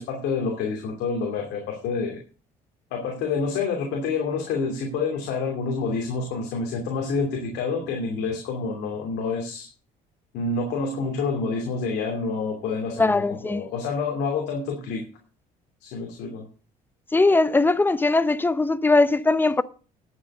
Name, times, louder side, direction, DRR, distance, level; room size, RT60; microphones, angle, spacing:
voice 1, 0.0-2.2 2.9-9.7 10.3-15.0 15.8-16.5, left 4 dB, 85° left, 2.9 m, -28 dB
voice 2, 13.0-13.7 17.1-19.6, left 3 dB, 10° left, 0.7 m, -20 dB
11.0 x 7.7 x 6.5 m
cardioid pair, 110°, 17 cm